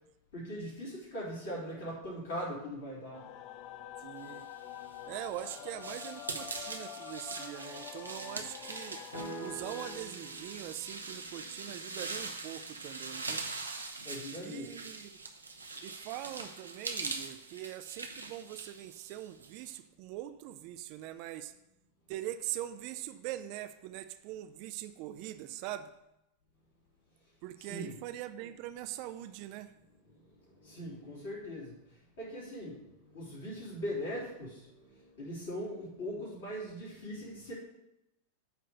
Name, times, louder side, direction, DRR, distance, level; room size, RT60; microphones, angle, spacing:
voice 1, 0.3-3.2 14.0-14.7 27.6-27.9 30.6-31.7 32.2-32.8 33.1-34.7 35.2-37.5, equal, 60° left, -8 dB, 3.3 m, -40 dB
sound 1, 3.1-10.0, left 11 dB, 40° left, 0.4 m, -46 dB
voice 2, 4.0-4.5 5.1-9.0 9.4-13.5 14.4-15.2 15.8-21.5 22.1-25.9 27.4-29.7, right 13 dB, 45° right, 11 dB, 0.4 m, -42 dB
sound 2, 4.6-19.8, right 3 dB, 80° right, 0.8 m, -42 dB
sound 3, 9.1-13.2, right 2 dB, 85° left, 3.0 m, -48 dB
9.1 x 3.3 x 6.5 m, 0.89 s
figure-of-eight pair, 90°, 0 cm